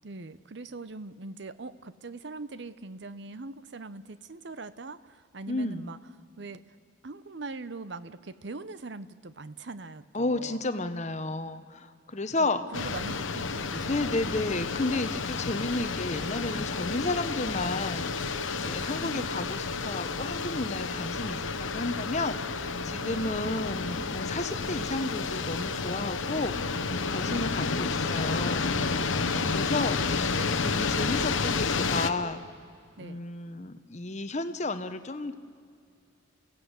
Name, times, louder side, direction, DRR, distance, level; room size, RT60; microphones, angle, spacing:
voice 1, 0.0-6.0 6.4-6.6 7.0-10.6 12.4-14.3 19.0-19.6 23.0-23.3 27.3-27.5 30.2-31.0 33.0-33.2, right 3 dB, 60° right, 14 dB, 0.8 m, -42 dB
voice 2, 5.5-5.9 10.1-12.9 13.9-18.1 18.6-28.8 29.5-30.4 30.6-32.5 33.0-35.3, left 2 dB, 35° left, 10 dB, 0.9 m, -32 dB
sound 1, 12.7-32.1, left 4 dB, 75° left, 1.0 m, -31 dB
sound 2, 16.2-32.3, right 2 dB, 15° right, 2.3 m, -44 dB
28.5 x 16.5 x 8.1 m, 2.4 s
head